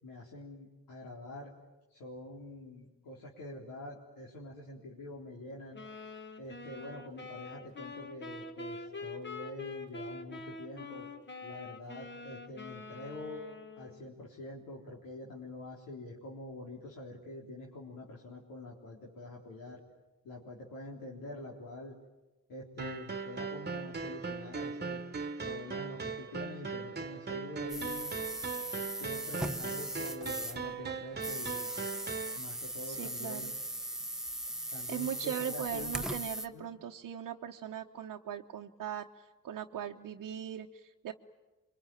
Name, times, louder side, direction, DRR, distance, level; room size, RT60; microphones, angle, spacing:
voice 1, 0.0-1.5 1.9-5.8 6.4-11.1 11.4-13.4 13.8-19.8 20.2-21.9 22.5-25.0 25.4-28.1 28.9-31.7 32.4-33.5 34.7-35.9 36.5-36.7, left 2 dB, 85° left, -3 dB, 3.9 m, -45 dB
sound 1, 5.7-14.1, left 3 dB, 35° left, 2.2 m, -45 dB
sound 2, 22.8-32.4, right 5 dB, 30° right, 1.5 m, -39 dB
sound 3, 27.7-30.7 31.1-36.5, right 1 dB, ahead, 1.2 m, -39 dB
voice 2, 32.8-33.5 34.7-41.1, right 9 dB, 75° right, -1 dB, 1.2 m, -40 dB
27.0 x 24.0 x 9.2 m, 1.1 s
cardioid pair, 90°, 33 cm